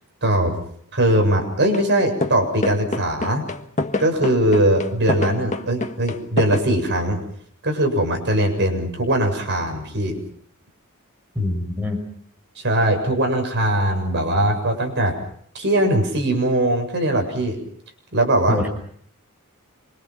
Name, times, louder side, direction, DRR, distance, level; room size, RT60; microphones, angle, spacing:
voice 1, 0.2-0.6 0.9-3.4 4.0-7.2 7.6-10.2 12.6-15.2 15.5-17.6 18.1-18.7, right 1 dB, 55° right, 4 dB, 7.3 m, -20 dB
sound 1, 1.7-1.9 2.2-6.6, left 2 dB, 35° left, 1.5 m, -26 dB
voice 2, 11.4-12.0 18.5-18.7, left 2 dB, 10° right, 2 dB, 5.9 m, -24 dB
27.0 x 25.0 x 5.9 m, 0.63 s
head